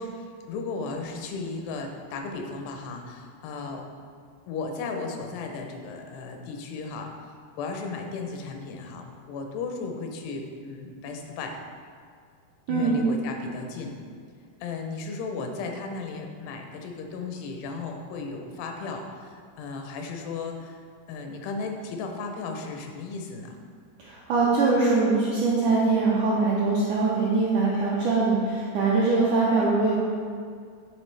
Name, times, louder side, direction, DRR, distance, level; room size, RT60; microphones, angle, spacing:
voice 1, 0.0-3.9 4.5-11.6 12.7-14.0 14.6-23.6, left 4 dB, 85° left, 3 dB, 2.8 m, -35 dB
voice 2, 12.7-13.0 24.0-30.0, right 3 dB, 80° right, -7 dB, 1.8 m, -22 dB
9.2 x 4.4 x 3.3 m, 2.1 s
omnidirectional pair, 4.6 m